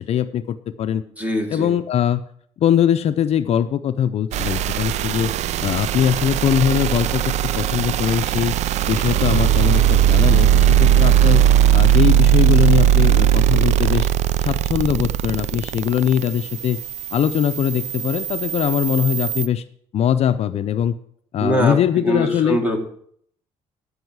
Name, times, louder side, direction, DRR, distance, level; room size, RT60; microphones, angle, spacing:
voice 1, 0.0-1.0 1.5-2.2 2.6-5.3 5.6-8.6 8.9-11.4 11.7-14.1 14.4-16.8 17.1-19.6 19.9-20.9 21.3-22.6, left 9 dB, 55° left, 11 dB, 0.5 m, -21 dB
voice 2, 1.2-1.8 21.4-22.8, equal, 10° right, 3 dB, 2.0 m, -22 dB
sound 1, 4.3-19.5, right 11 dB, 65° right, 0.4 m, -18 dB
13.5 x 5.6 x 4.7 m, 0.63 s
cardioid pair, 100°, 13 cm